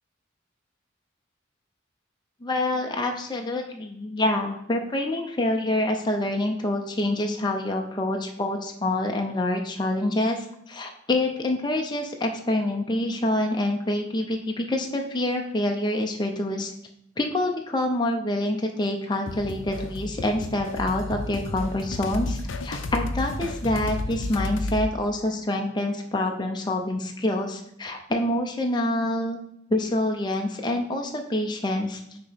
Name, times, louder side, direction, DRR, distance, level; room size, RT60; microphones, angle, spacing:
voice 1, 2.4-16.7 17.2-29.4 29.7-32.0, left 1 dB, 20° left, 3 dB, 0.6 m, -26 dB
sound 1, 19.3-24.9, left 2 dB, 75° left, 0.6 m, -32 dB
6.4 x 3.0 x 5.7 m, 0.75 s
head